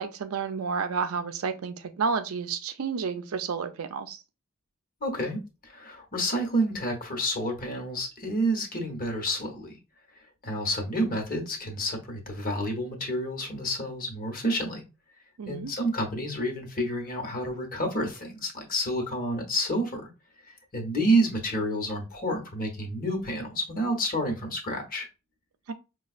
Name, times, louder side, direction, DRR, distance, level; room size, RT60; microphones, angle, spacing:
voice 1, 0.0-4.2 15.4-15.7 25.7-25.8, right 5 dB, 75° right, 0.5 m, -31 dB
voice 2, 5.0-9.8 10.4-14.8 15.5-20.1 20.5-25.1, right 1 dB, 45° left, 1.0 m, -29 dB
5.1 x 2.3 x 2.4 m
head